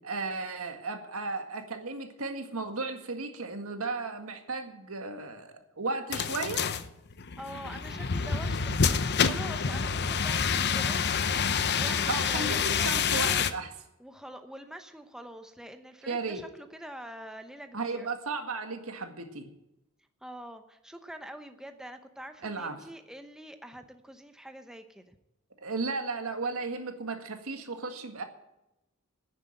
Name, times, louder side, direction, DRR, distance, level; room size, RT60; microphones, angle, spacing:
voice 1, 0.0-6.6 12.1-13.7 16.1-16.4 17.7-19.5 22.4-22.9 25.6-28.2, right 3 dB, 80° right, 6 dB, 1.9 m, -35 dB
sound 1, 6.1-13.5, left 6 dB, 50° left, 0.8 m, -27 dB
voice 2, 7.4-8.7 9.0-13.4 14.0-18.1 20.2-25.2, right 1 dB, 5° right, 7 dB, 0.8 m, -45 dB
10.5 x 9.9 x 9.1 m, 0.90 s
head